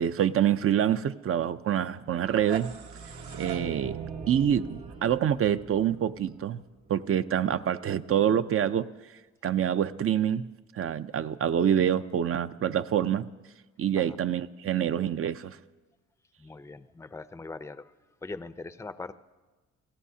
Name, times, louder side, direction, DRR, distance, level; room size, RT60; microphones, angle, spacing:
voice 1, 0.0-2.8 3.4-4.0 4.3-6.6 6.9-8.9 9.4-10.5 10.7-13.3 13.8-15.6, right 9 dB, 45° right, 12 dB, 0.6 m, -26 dB
sound 1, 2.1-7.0, right 6 dB, 75° right, 1.6 m, -40 dB
voice 2, 16.4-17.9 18.2-19.1, left 3 dB, 10° left, 12 dB, 0.6 m, -41 dB
29.0 x 17.5 x 2.8 m, 1.2 s
cardioid pair, 90°, 30 cm